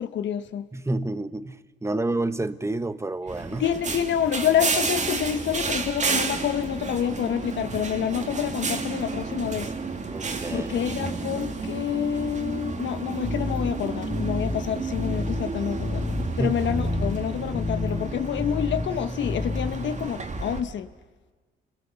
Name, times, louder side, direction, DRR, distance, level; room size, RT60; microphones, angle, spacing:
voice 1, 0.0-0.7 3.6-9.7 10.5-20.9, left 9 dB, 70° left, 10 dB, 1.2 m, -28 dB
voice 2, 0.7-3.6 10.1-10.7 16.3-16.6, right 2 dB, 15° right, 12 dB, 1.1 m, -29 dB
sound 1, 3.3-20.6, right 4 dB, 35° right, 2.4 m, -31 dB
sound 2, 13.2-20.1, left 3 dB, 20° left, 3.1 m, -31 dB
28.5 x 21.0 x 7.0 m, 1.4 s
cardioid pair, 90°, 20 cm